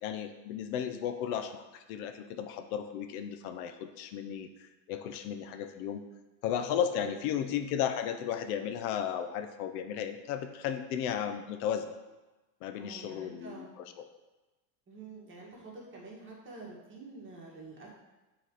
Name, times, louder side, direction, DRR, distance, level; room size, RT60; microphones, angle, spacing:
voice 1, 0.0-4.5 4.9-6.0 6.4-12.0 12.6-13.7, left 9 dB, 70° left, 8 dB, 0.6 m, -34 dB
voice 2, 6.9-7.3 12.7-13.7 14.9-17.9, right 3 dB, 25° right, -3 dB, 1.8 m, -48 dB
6.4 x 3.9 x 3.9 m, 1.1 s
supercardioid pair, 115°, 44 cm